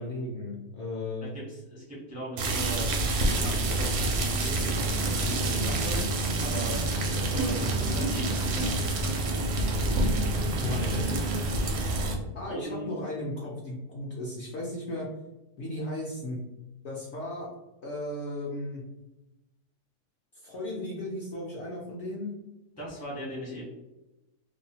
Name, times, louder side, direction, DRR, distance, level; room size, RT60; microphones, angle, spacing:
voice 1, 0.0-1.3 10.6-11.1 12.3-15.1 15.6-16.4 16.8-17.5 17.8-18.8 20.3-22.3, left 1 dB, 65° left, -4 dB, 0.7 m, -35 dB
voice 2, 1.2-2.9 3.3-6.0 6.4-8.7 10.6-11.3 12.5-13.0 22.8-23.6, right 1 dB, 20° right, -6 dB, 0.4 m, -39 dB
sound 1, 2.4-12.1, right 2 dB, 70° right, 0.7 m, -27 dB
2.7 x 2.1 x 2.7 m, 0.97 s
omnidirectional pair, 1.6 m